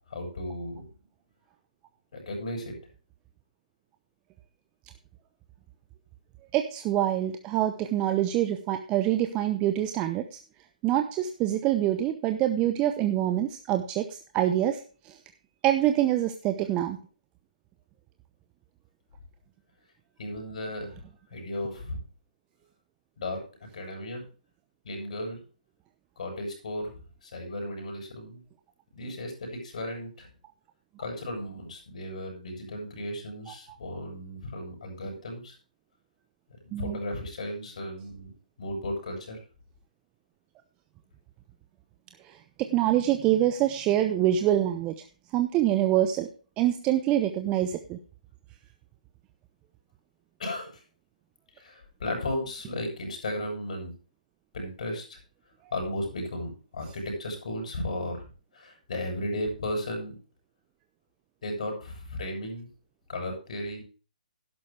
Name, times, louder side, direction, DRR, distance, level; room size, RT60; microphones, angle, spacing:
voice 1, 0.1-0.9 2.1-2.8 20.2-21.0 21.3-22.0 23.2-23.4 23.7-24.2 24.8-25.4 26.2-28.4 28.9-30.3 31.0-35.6 36.6-38.3 38.6-39.4 50.4-50.8 51.6-53.9 54.5-55.2 55.7-58.3 58.5-60.2 61.4-62.7 63.1-63.8, left 1 dB, 60° left, 2 dB, 7.2 m, -35 dB
voice 2, 6.5-10.2 10.8-14.8 15.0-15.1 15.6-17.0 36.7-37.0 42.6-44.9 45.3-46.3 46.6-48.0, right 12 dB, 20° right, 7 dB, 0.8 m, -25 dB
12.0 x 11.0 x 3.4 m, 0.36 s
figure-of-eight pair, 135°, 4 cm